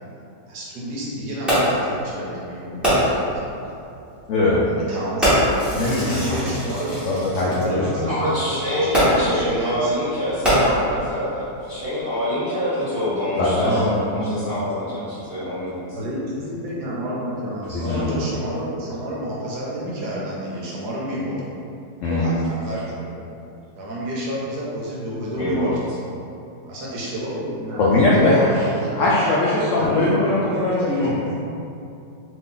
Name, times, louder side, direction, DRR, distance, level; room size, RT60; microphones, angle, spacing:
voice 1, 0.5-3.2 4.6-5.5 5.7-6.9 7.5-9.9 13.5-14.1 15.9-21.4 22.1-23.2 23.8-25.7 26.7-28.0 28.8-29.0 29.8-31.4, equal, 70° right, -5 dB, 1.1 m, -30 dB
Fireworks, 1.5-1.9 2.8-3.3 4.2-4.4 5.2-7.6 8.9-9.4 10.3-11.1 11.8-11.9, equal, ahead, 0.7 m, -21 dB
voice 2, 4.3-4.7 5.8-6.2 7.0-8.1 13.4-13.8 14.2-14.3 17.7-18.2 22.0-22.3 27.8-31.1, left 2 dB, 80° left, -7 dB, 0.7 m, -20 dB
voice 3, 8.1-16.0 25.3-25.7, left 1 dB, 35° left, -12 dB, 1.1 m, -26 dB
2.9 x 2.6 x 3.7 m, 2.7 s
omnidirectional pair, 1.9 m